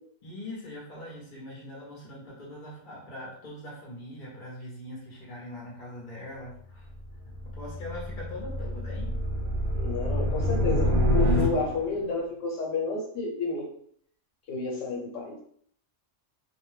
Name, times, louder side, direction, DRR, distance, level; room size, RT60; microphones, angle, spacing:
voice 1, 0.2-6.9 7.2-9.1, left 1 dB, 45° left, -4 dB, 0.7 m, -42 dB
sound 1, 6.8-12.0, left 1 dB, 65° right, 0.8 m, -27 dB
voice 2, 9.7-13.6 14.5-15.4, left 3 dB, 90° left, -1 dB, 1.1 m, -30 dB
2.5 x 2.2 x 3.2 m, 0.64 s
omnidirectional pair, 1.2 m